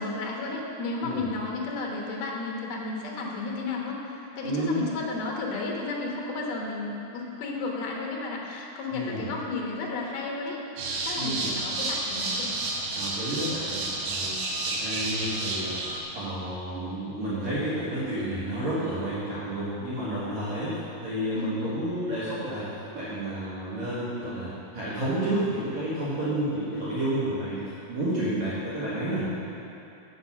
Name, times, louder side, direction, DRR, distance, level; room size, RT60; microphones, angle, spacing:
voice 1, 0.0-10.6 11.1-12.5 21.4-21.8, left 3 dB, 85° left, -2 dB, 3.1 m, -33 dB
voice 2, 4.4-4.8 8.9-9.3 11.1-11.5 12.9-14.3 14.7-15.8 16.1-22.7 22.9-29.3, right 1 dB, 55° right, -11 dB, 2.7 m, -30 dB
sound 1, 10.8-16.0, right 2 dB, 85° right, 3.2 m, -30 dB
8.3 x 8.1 x 6.1 m, 2.9 s
omnidirectional pair, 4.3 m